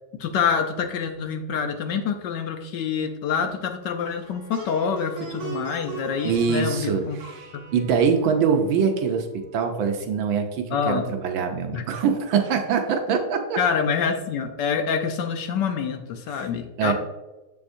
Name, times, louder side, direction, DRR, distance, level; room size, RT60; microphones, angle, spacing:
voice 1, 0.2-7.2 7.5-7.8 10.7-11.1 11.7-11.8 13.6-16.9, left 6 dB, 70° left, 5 dB, 1.0 m, -26 dB
Plucked string instrument, 4.0-9.2, right 4 dB, 50° right, 1.8 m, -39 dB
voice 2, 6.2-13.6 16.3-16.5 16.8-16.9, right 6 dB, 70° right, 5 dB, 1.3 m, -24 dB
7.1 x 6.9 x 2.6 m, 1.1 s
omnidirectional pair, 2.4 m